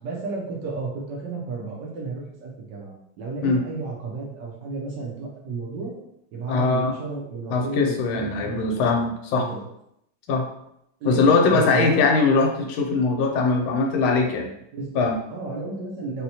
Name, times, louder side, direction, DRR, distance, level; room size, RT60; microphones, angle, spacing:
voice 1, 0.0-5.9 6.3-8.8 9.3-9.6 11.0-12.0 14.7-16.2, right 3 dB, 70° right, -2 dB, 1.2 m, -33 dB
voice 2, 6.5-6.9 7.5-9.4 10.3-10.4 11.0-14.5 14.9-15.2, left 4 dB, 85° left, 2 dB, 1.4 m, -21 dB
4.2 x 2.1 x 2.7 m, 0.77 s
omnidirectional pair, 2.2 m